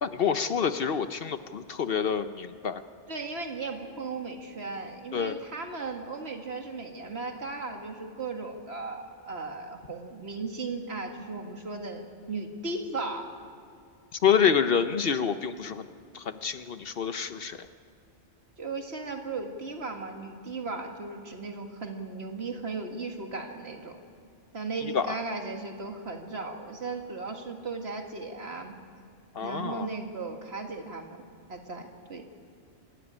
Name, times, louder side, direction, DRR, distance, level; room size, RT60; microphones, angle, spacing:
voice 1, 0.0-2.8 5.1-5.4 14.2-15.8 16.1-17.6 24.9-25.1 29.4-29.9, left 7 dB, 55° left, 11 dB, 0.9 m, -27 dB
voice 2, 3.1-13.3 18.6-24.0 24.5-28.7 29.4-31.2 31.5-32.3, right 3 dB, 60° right, 3 dB, 2.2 m, -36 dB
26.5 x 13.5 x 9.9 m, 2.4 s
omnidirectional pair, 1.2 m